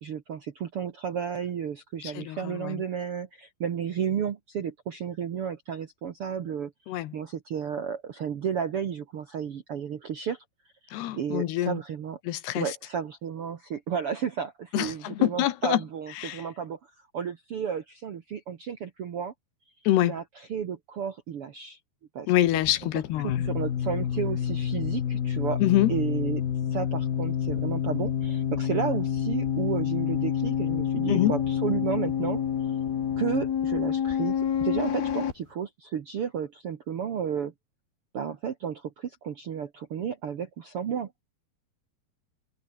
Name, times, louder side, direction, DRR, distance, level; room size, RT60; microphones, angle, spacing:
voice 1, 0.0-6.7 7.1-10.4 11.1-12.2 12.5-19.3 20.0-21.8 22.1-22.3 22.9-25.6 25.9-26.4 26.7-32.4 33.2-37.5 38.1-41.1, right 8 dB, 65° right, 1.4 m, -32 dB
voice 2, 2.0-2.8 6.9-7.1 10.9-11.8 12.3-12.7 14.7-15.8 16.2-16.4 19.9-20.2 22.3-23.4 25.6-25.9 31.1-31.3, left 14 dB, 85° left, 3.5 m, -25 dB
sound 1, 22.5-35.3, left 8 dB, 70° left, 4.6 m, -28 dB
omnidirectional pair, 4.6 m